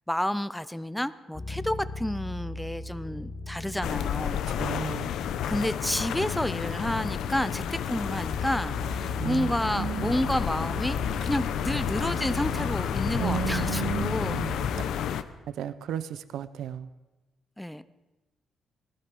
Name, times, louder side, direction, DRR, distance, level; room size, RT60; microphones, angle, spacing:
voice 1, 0.1-4.4 5.5-14.4 17.6-17.8, left 1 dB, 5° left, 15 dB, 0.5 m, -30 dB
sound 1, 1.3-14.9, left 3 dB, 20° left, 1.3 m, -37 dB
sound 2, 3.8-15.2, left 9 dB, 75° left, 0.8 m, -31 dB
voice 2, 4.6-5.1 9.2-10.1 13.2-14.9 15.6-16.9, right 11 dB, 75° right, 14 dB, 0.7 m, -34 dB
19.0 x 14.0 x 5.3 m, 1.1 s
cardioid pair, 175°, 0 cm